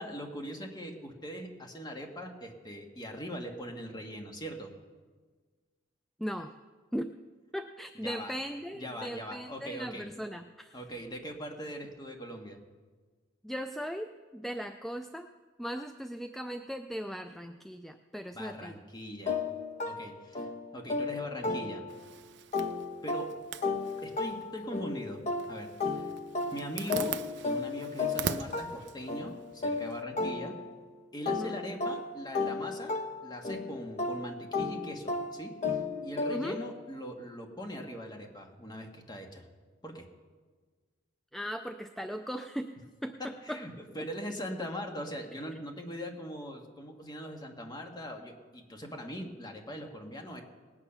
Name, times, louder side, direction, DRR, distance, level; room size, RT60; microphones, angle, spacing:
voice 1, 0.0-4.7 8.0-8.3 8.7-10.1 10.7-12.6 18.3-19.4 19.8-20.5 20.7-21.8 23.0-23.4 24.0-25.2 25.5-26.1 26.5-30.5 31.1-33.0 33.2-39.4 39.8-40.1 43.4-50.4, equal, 20° left, 2 dB, 1.6 m, -41 dB
voice 2, 6.2-6.5 6.9-7.1 7.5-10.8 13.4-15.3 15.6-18.8 31.3-31.5 36.3-36.6 41.3-42.8 43.0-43.6 44.0-44.1, equal, ahead, 7 dB, 0.4 m, -38 dB
sound 1, 19.3-22.1 22.5-30.9 31.3-36.7, left 3 dB, 40° left, 1.0 m, -34 dB
Zipper (clothing), 21.9-30.0, right 7 dB, 65° right, 0.6 m, -42 dB
19.0 x 8.8 x 5.8 m, 1.4 s
head